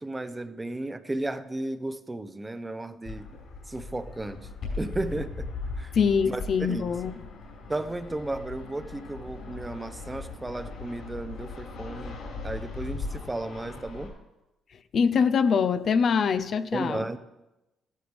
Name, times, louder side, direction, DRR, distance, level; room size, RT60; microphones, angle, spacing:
voice 1, 0.0-3.3 3.7-4.4 4.8-5.5 5.8-5.9 6.2-6.4 6.7-7.0 7.7-14.1 16.7-17.2, right 2 dB, 15° right, 0.7 m, -34 dB
Fixed-wing aircraft airplane, 3.0-14.1, left 3 dB, 65° left, 4.9 m, -39 dB
voice 2, 5.9-7.2 14.9-17.0, left 6 dB, 50° left, 0.6 m, -24 dB
14.0 x 12.5 x 3.5 m
cardioid pair, 110°, 0 cm